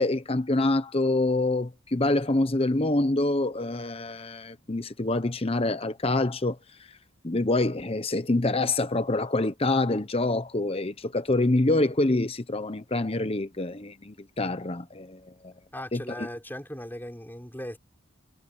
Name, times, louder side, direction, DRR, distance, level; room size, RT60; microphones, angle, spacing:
voice 1, 0.0-6.6 7.2-15.5 15.9-16.0, left 2 dB, 25° left, 0.9 m, -26 dB
voice 2, 15.7-17.8, left 1 dB, 10° left, 6.2 m, -38 dB
head